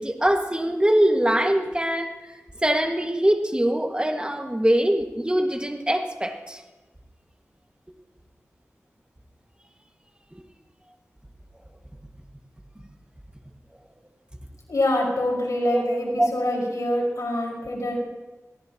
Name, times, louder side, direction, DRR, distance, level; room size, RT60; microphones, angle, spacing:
voice 1, 0.0-2.1 2.6-6.6 15.7-16.3, right 1 dB, 15° right, 3 dB, 1.9 m, -23 dB
voice 2, 14.7-18.0, left 1 dB, 90° left, -2 dB, 5.1 m, -25 dB
26.5 x 17.5 x 3.0 m, 1.1 s
wide cardioid pair, 55°, 6 cm